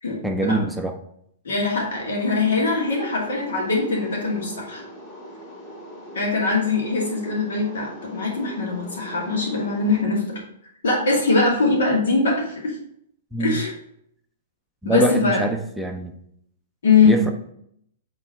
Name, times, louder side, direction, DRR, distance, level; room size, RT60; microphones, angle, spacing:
voice 1, 0.2-0.9 13.3-13.6 14.8-16.1 17.0-17.3, right 2 dB, 5° right, 3 dB, 0.5 m, -24 dB
voice 2, 1.4-4.8 6.1-10.3 10.8-12.8 13.4-13.7 14.8-15.4 16.8-17.2, left 3 dB, 75° left, -2 dB, 2.3 m, -22 dB
sound 1, 1.9-10.0, equal, 25° left, 2.5 m, -41 dB
6.1 x 3.8 x 4.3 m, 0.71 s
hypercardioid pair, 125°, 0 cm